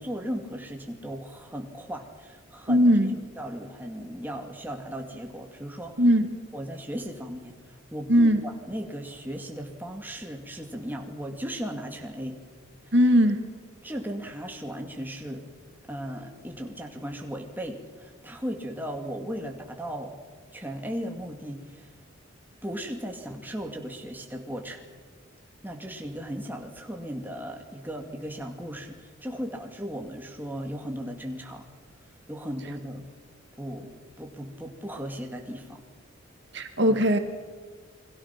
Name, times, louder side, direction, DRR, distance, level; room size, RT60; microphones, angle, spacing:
voice 1, 0.0-2.9 3.4-6.0 6.5-12.4 12.8-12.9 13.8-15.5 15.9-20.1 20.5-21.9 22.6-24.8 25.6-31.7 32.3-33.1 33.6-35.8 36.9-37.0, equal, 10° right, 2 dB, 2.4 m, -36 dB
voice 2, 2.7-3.2 6.0-6.3 8.1-8.4 12.9-13.4 36.5-37.2, equal, 60° right, 7 dB, 2.0 m, -19 dB
29.5 x 22.5 x 6.0 m, 1.5 s
head